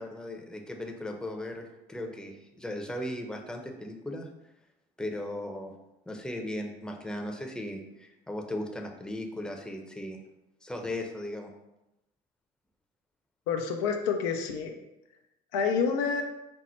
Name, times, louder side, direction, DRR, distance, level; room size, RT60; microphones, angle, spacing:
voice 1, 0.0-4.3 5.0-5.7 6.1-10.2 10.6-11.5, left 1 dB, 5° left, 2 dB, 0.6 m, -37 dB
voice 2, 13.5-14.7 15.5-16.2, left 6 dB, 85° left, 4 dB, 0.5 m, -28 dB
4.3 x 2.0 x 4.3 m, 0.93 s
hypercardioid pair, 70°, 21 cm